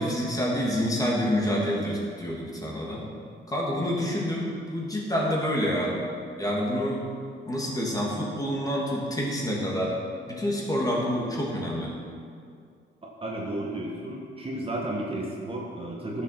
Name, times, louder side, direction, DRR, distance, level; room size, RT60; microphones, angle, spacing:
voice 1, 0.0-3.1 3.5-6.0 6.4-7.0 7.5-9.9 10.3-11.9, equal, 20° left, -3 dB, 2.9 m, -27 dB
voice 2, 13.0-16.2, right 1 dB, 30° right, -2 dB, 1.7 m, -33 dB
11.0 x 7.5 x 6.0 m, 2.2 s
cardioid pair, 90°, 20 cm